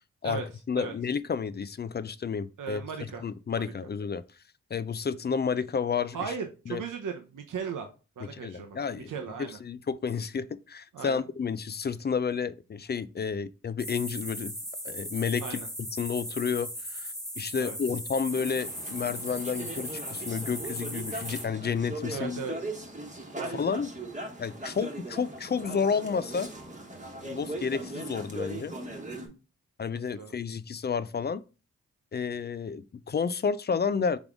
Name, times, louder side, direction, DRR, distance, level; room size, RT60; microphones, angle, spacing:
voice 1, 0.7-4.2 4.7-6.2 6.7-6.8 8.3-9.1 9.4-14.6 14.8-15.6 16.0-22.4 23.5-23.9 24.4-26.5 27.3-28.7 29.8-31.4 32.1-34.2, left 6 dB, 35° left, 0.4 m, -31 dB
voice 2, 2.6-3.2 3.5-3.7 6.1-7.9 8.2-9.6 10.9-11.2 15.4-15.7 17.6-17.8 22.1-22.5 23.4-23.6 30.1-30.3, right 6 dB, 75° right, 0.7 m, -37 dB
sound 1, 13.8-21.4, equal, ahead, 1.6 m, -38 dB
sound 2, 18.3-29.3, right 2 dB, 25° right, 1.2 m, -39 dB
3.7 x 3.5 x 3.5 m
cardioid pair, 50°, 32 cm